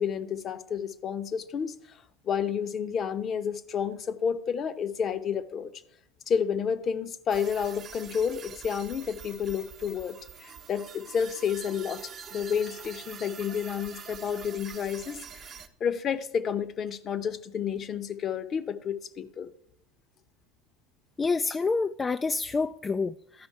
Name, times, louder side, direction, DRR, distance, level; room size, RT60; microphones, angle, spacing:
voice 1, 0.0-5.7 6.3-15.5 15.8-19.5, left 7 dB, 40° left, 12 dB, 0.8 m, -30 dB
sound 1, 7.3-15.7, right 7 dB, 40° right, 0.9 m, -45 dB
voice 2, 21.2-23.5, left 4 dB, 25° left, 10 dB, 0.3 m, -28 dB
13.0 x 5.2 x 4.6 m, 0.73 s
hypercardioid pair, 80°, 0 cm